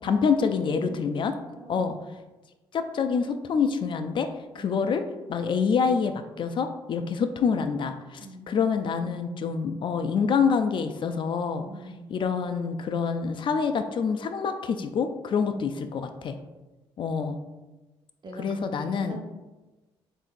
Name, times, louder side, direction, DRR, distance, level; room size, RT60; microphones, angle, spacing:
voice 1, 0.0-1.3 1.7-2.0 2.7-4.3 4.5-5.0 5.3-11.7 12.1-16.4 17.0-17.4 18.4-19.2, left 6 dB, 50° left, 8 dB, 0.4 m, -26 dB
voice 2, 0.6-1.0 1.6-2.0 4.5-4.8 8.1-8.6 11.6-12.1 15.4-15.8 18.2-19.3, right 2 dB, 45° right, 3 dB, 0.8 m, -43 dB
7.1 x 2.7 x 2.5 m, 1.1 s
cardioid pair, 75°, 10 cm